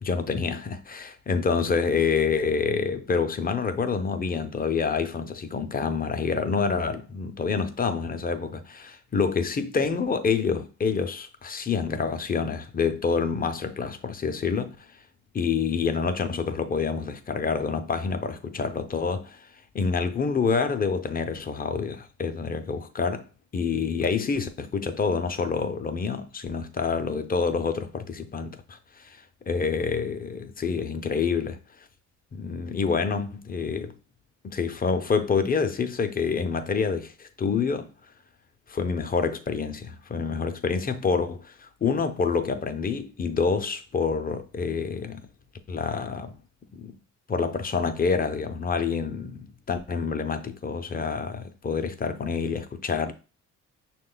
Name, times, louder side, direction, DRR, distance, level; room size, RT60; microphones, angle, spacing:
voice 1, 0.0-14.8 15.3-19.5 19.7-23.2 23.5-31.6 32.3-33.9 34.4-37.9 38.7-45.3 45.7-46.4 46.7-47.0 47.3-53.1, left 5 dB, 30° left, 0.6 m, -27 dB
5.9 x 2.3 x 3.9 m
cardioid pair, 90°, 30 cm